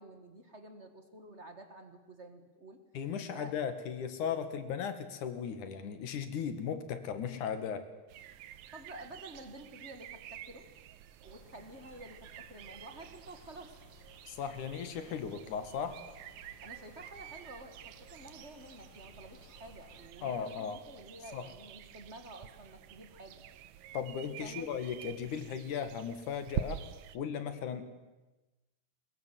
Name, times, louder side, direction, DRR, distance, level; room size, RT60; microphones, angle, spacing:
voice 1, 0.0-2.8 3.3-3.5 8.7-10.7 11.2-13.7 16.6-23.4 24.4-24.7, right 1 dB, 30° right, 7 dB, 1.4 m, -50 dB
voice 2, 2.9-7.9 14.3-16.0 20.2-20.8 21.3-21.5 23.9-26.8 27.1-27.8, left 7 dB, 75° left, 9 dB, 3.2 m, -37 dB
sound 1, 8.1-27.2, right 10 dB, 75° right, 2.2 m, -47 dB
sound 2, 11.2-20.1, left 3 dB, 40° left, 2.9 m, -60 dB
22.0 x 21.5 x 7.7 m, 1.1 s
omnidirectional pair, 3.6 m